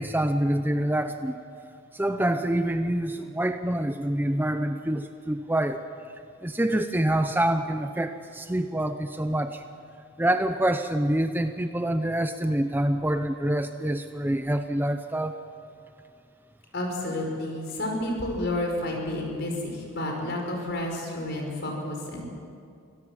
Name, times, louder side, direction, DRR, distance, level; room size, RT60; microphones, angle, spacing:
voice 1, 0.0-1.4 1.9-5.8 6.4-9.6 10.2-15.3, right 1 dB, 10° right, 8 dB, 0.6 m, -26 dB
voice 2, 16.7-22.2, left 1 dB, 55° left, 1 dB, 5.3 m, -30 dB
24.5 x 17.0 x 7.5 m, 2.4 s
head